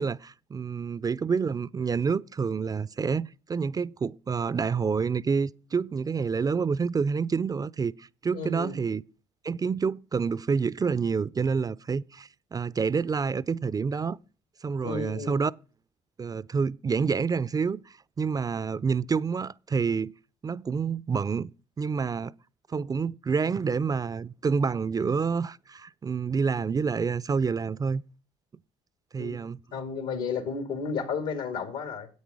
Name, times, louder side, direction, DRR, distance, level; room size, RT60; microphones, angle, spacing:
voice 1, 0.0-9.0 9.4-14.2 14.6-15.5 16.2-20.1 20.4-21.5 21.8-22.3 22.7-28.0 29.1-29.6, right 5 dB, 25° right, 0.4 m, -28 dB
voice 2, 8.3-8.8 14.8-15.4 29.2-29.4 29.7-32.1, left 5 dB, 80° left, 2.1 m, -32 dB
9.5 x 8.4 x 4.8 m
hypercardioid pair, 65°, 14 cm